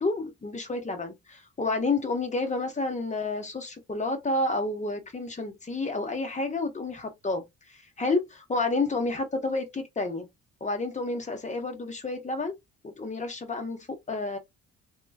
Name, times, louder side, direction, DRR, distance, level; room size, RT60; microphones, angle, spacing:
voice 1, 0.0-7.5 8.0-10.3 10.6-12.5 12.8-14.4, left 3 dB, 25° left, 1.0 m, -30 dB
2.9 x 2.3 x 2.3 m
cardioid pair, 90°, 30 cm